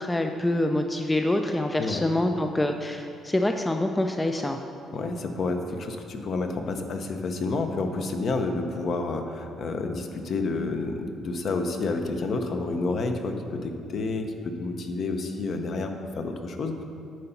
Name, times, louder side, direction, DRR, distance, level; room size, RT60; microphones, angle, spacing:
voice 1, 0.0-4.6, left 1 dB, 10° left, 5 dB, 0.3 m, -26 dB
voice 2, 4.9-16.8, left 3 dB, 50° left, 5 dB, 0.7 m, -29 dB
9.4 x 4.0 x 5.7 m, 2.5 s
cardioid pair, 130°, 0 cm